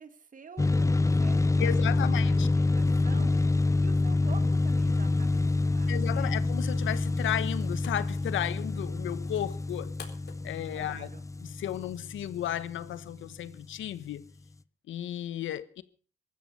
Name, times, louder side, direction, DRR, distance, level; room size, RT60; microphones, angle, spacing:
voice 1, 0.0-3.4 3.8-6.4 10.7-11.2, right 5 dB, 40° right, 2.1 m, -48 dB
sound 1, 0.6-13.0, left 2 dB, 15° left, 0.8 m, -27 dB
voice 2, 1.6-2.5 5.9-9.9 10.4-11.1 11.5-14.3 14.9-15.8, left 12 dB, 75° left, 1.4 m, -34 dB
sound 2, 7.1-12.2, left 6 dB, 55° left, 3.9 m, -54 dB
16.0 x 12.5 x 6.9 m
cardioid pair, 90°, 20 cm